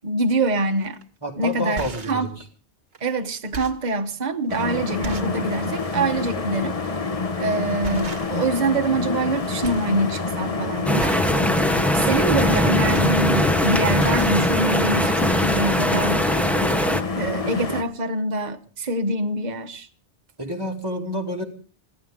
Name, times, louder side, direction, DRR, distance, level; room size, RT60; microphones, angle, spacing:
voice 1, 0.0-1.0 1.4-2.3 3.0-7.0 7.4-11.2 11.9-16.2 17.2-19.9, right 2 dB, 40° right, 1.2 m, -25 dB
sound 1, 0.8-1.0 1.6-2.3 2.9-3.0 3.4-3.9 4.5-4.6 5.0-5.4 5.8-6.0 7.2-7.4 7.8-8.6 8.9-9.3 9.6-9.9 10.3-10.5 11.0-11.4 12.5-13.6 13.9-14.4 15.2-15.3 15.5-15.7, right 4 dB, 65° right, 1.4 m, -37 dB
voice 2, 1.2-2.3 20.4-21.4, equal, 20° right, 2.8 m, -28 dB
sound 2, 4.5-17.8, left 4 dB, 35° left, 1.1 m, -27 dB
sound 3, 10.9-17.0, equal, ahead, 0.7 m, -21 dB
24.5 x 15.5 x 3.6 m
omnidirectional pair, 1.1 m